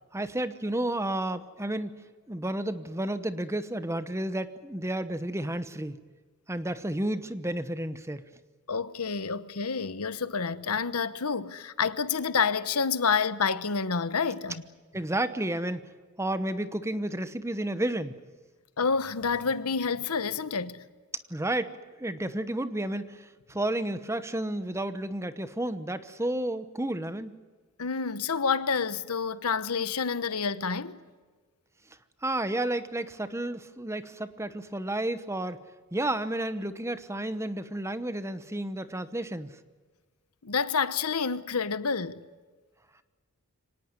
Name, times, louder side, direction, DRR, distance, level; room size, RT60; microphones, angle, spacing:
voice 1, 0.1-6.0 6.5-8.2 14.9-15.9 16.2-18.2 21.3-27.3 32.2-35.6 35.9-39.5, right 1 dB, 10° right, 1.0 m, -31 dB
voice 2, 8.7-14.6 18.8-20.8 27.8-31.0 40.4-42.2, left 5 dB, 85° left, 1.1 m, -28 dB
25.0 x 18.5 x 9.6 m
head